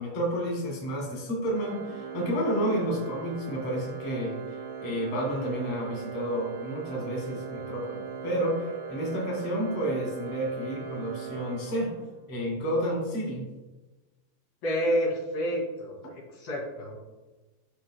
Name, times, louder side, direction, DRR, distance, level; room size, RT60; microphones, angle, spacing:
voice 1, 0.0-4.4 4.8-11.9 12.3-13.5, equal, 45° left, -3 dB, 3.5 m, -30 dB
Organ, 1.5-12.3, right 7 dB, 80° right, 2.6 m, -40 dB
voice 2, 14.6-16.0 16.4-17.0, equal, 70° left, -4 dB, 3.7 m, -28 dB
13.0 x 6.4 x 2.3 m, 1.2 s
omnidirectional pair, 4.4 m